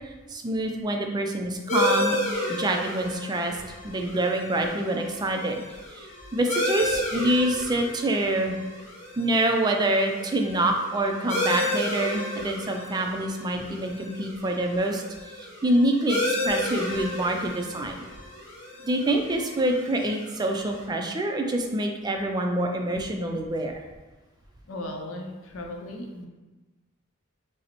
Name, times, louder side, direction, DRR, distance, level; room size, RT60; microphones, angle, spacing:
voice 1, 0.3-2.2 2.5-3.5 3.8-5.6 6.0-6.1 6.3-8.6 9.2-18.0 18.8-23.7, right 1 dB, 20° right, 3 dB, 0.3 m, -26 dB
sound 1, 1.7-20.8, left 1 dB, 35° left, 1.3 m, -32 dB
voice 2, 24.7-26.3, left 1 dB, 70° left, 2 dB, 0.6 m, -36 dB
4.9 x 2.0 x 2.9 m, 1.2 s
head